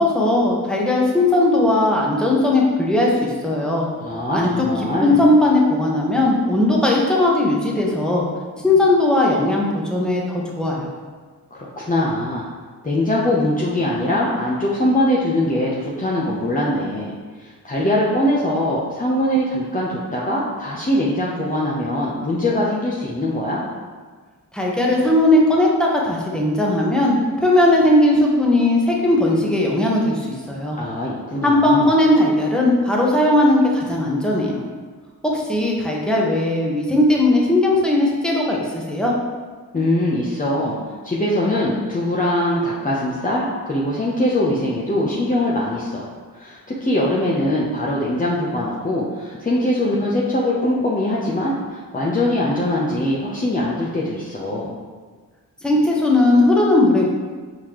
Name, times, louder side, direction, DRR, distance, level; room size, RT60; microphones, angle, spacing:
voice 1, 0.0-3.9 4.3-4.7 5.0-8.3 8.6-10.9 24.5-30.8 31.4-34.6 35.2-39.1 55.6-57.1, left 1 dB, ahead, -3 dB, 1.1 m, -18 dB
voice 2, 4.0-5.2 11.5-12.5 12.8-17.1 17.4-23.6 30.8-31.9 39.7-46.1 46.4-54.7, left 1 dB, 20° left, -6 dB, 0.8 m, -22 dB
4.6 x 3.7 x 3.0 m, 1.5 s
supercardioid pair, 45°, 41 cm